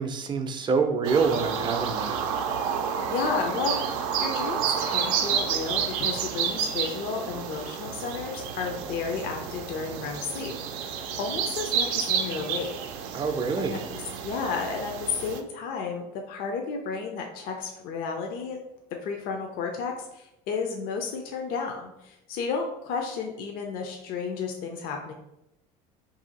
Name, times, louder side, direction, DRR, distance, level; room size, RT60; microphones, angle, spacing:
voice 1, 0.0-2.3 13.1-13.8, right 5 dB, 30° right, 7 dB, 0.4 m, -26 dB
sound 1, 1.0-15.4, right 7 dB, 85° right, 0.4 m, -30 dB
voice 2, 3.1-12.7 13.6-13.8 14.2-18.6 19.0-25.1, left 5 dB, 65° left, 2 dB, 0.5 m, -32 dB
2.7 x 2.7 x 3.9 m, 0.87 s
supercardioid pair, 110°, 16 cm